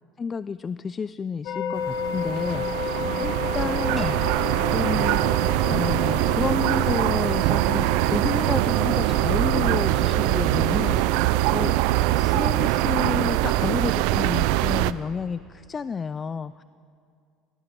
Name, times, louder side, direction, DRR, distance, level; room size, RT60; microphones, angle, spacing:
voice 1, 0.2-11.8 12.0-16.6, left 5 dB, 30° left, 15 dB, 0.3 m, -31 dB
sound 1, 1.4-12.9, left 6 dB, 60° left, 1.7 m, -33 dB
sound 2, 1.8-14.9, right 17 dB, 70° right, 0.4 m, -23 dB
sound 3, 4.0-6.9, equal, ahead, 1.9 m, -47 dB
16.5 x 12.5 x 6.7 m, 2.3 s
hypercardioid pair, 80°, 0 cm